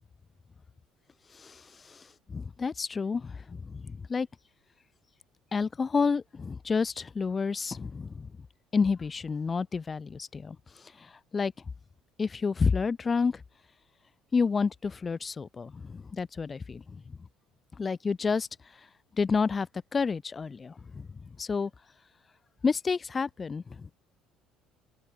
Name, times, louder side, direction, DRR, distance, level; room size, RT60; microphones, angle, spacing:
voice 1, 1.3-4.3 5.5-8.3 8.7-11.5 12.2-13.4 14.3-17.2 17.8-18.8 19.1-19.7 19.9-21.7 22.6-23.9, left 5 dB, 30° left, 2.4 m, -30 dB
open air
supercardioid pair, 80°, 0 cm